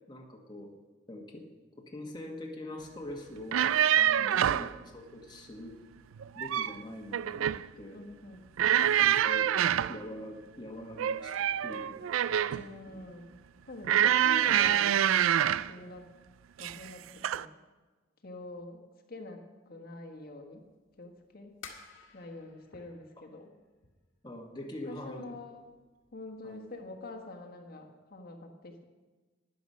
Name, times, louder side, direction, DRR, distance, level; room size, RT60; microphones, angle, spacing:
voice 1, 0.1-0.7 1.1-1.5 1.8-5.8 6.3-8.0 9.0-9.5 9.9-12.0 12.5-12.6 23.2-23.3 24.2-25.3 26.4-26.6, left 1 dB, 20° left, 0 dB, 1.3 m, -44 dB
sound 1, 3.4-4.7 6.2-6.8 7.1-7.6 8.6-10.0 11.0-12.7 13.8-15.7 16.6-16.9 17.2-17.4, right 10 dB, 90° right, 0.4 m, -26 dB
voice 2, 4.2-4.5 7.9-8.4 12.5-13.3 13.6-16.1 16.6-17.5 18.2-18.8 19.1-20.6 21.0-21.5 22.1-23.5 24.9-25.6 26.1-28.8, left 2 dB, 50° left, 3 dB, 1.3 m, -45 dB
sound 2, 20.5-25.4 25.8-26.3 26.6-26.8 27.1-27.2, left 5 dB, 75° left, 1.7 m, -53 dB
12.5 x 10.0 x 5.5 m, 1.3 s
head